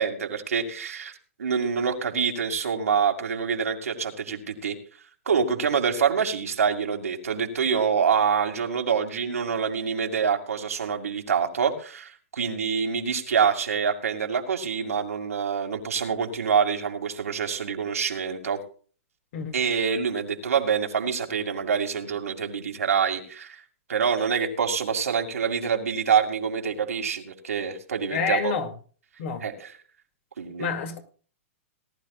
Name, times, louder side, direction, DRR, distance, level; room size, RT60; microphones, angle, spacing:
voice 1, 0.0-4.8 5.3-18.6 19.5-23.6 23.9-28.5 29.4-29.7 30.4-30.7, right 6 dB, 90° right, 2.4 m, -26 dB
voice 2, 28.1-28.7 29.2-29.4 30.6-31.0, left 6 dB, 60° left, 2.5 m, -28 dB
19.0 x 12.0 x 2.4 m
hypercardioid pair, 130°, 8 cm